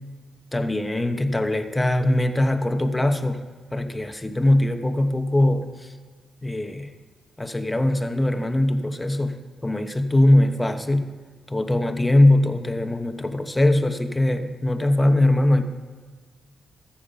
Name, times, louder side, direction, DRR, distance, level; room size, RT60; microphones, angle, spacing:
voice 1, 0.5-3.4 3.7-5.9 6.4-6.9 7.4-11.1 11.5-15.6, left 1 dB, 15° left, 7 dB, 1.0 m, -21 dB
14.0 x 7.2 x 5.7 m, 1.5 s
cardioid pair, 85°, 0 cm